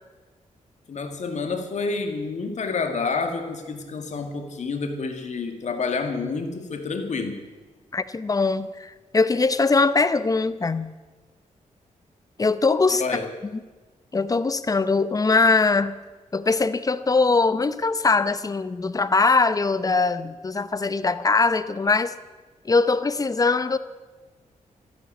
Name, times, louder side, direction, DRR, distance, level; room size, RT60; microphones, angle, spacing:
voice 1, 0.9-7.5 13.0-13.3, left 4 dB, 60° left, 6 dB, 2.1 m, -29 dB
voice 2, 7.9-10.9 12.4-13.0 14.1-16.0 16.3-22.1 22.6-23.8, left 3 dB, 25° left, 14 dB, 0.7 m, -21 dB
13.5 x 11.0 x 8.4 m, 1.3 s
wide cardioid pair, 115°, 14 cm